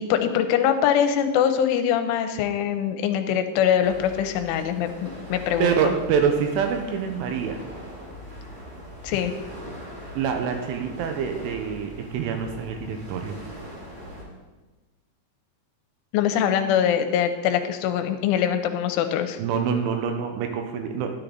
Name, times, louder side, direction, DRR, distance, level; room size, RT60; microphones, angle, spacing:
voice 1, 0.0-5.9 9.0-9.3 16.1-19.4, left 9 dB, 85° left, 8 dB, 3.2 m, -23 dB
sound 1, 3.8-14.2, equal, 50° right, 5.1 m, -41 dB
voice 2, 5.6-7.6 10.2-13.3 19.4-21.1, right 7 dB, 85° right, 4 dB, 3.3 m, -26 dB
13.0 x 10.5 x 3.9 m, 1.2 s
omnidirectional pair, 5.5 m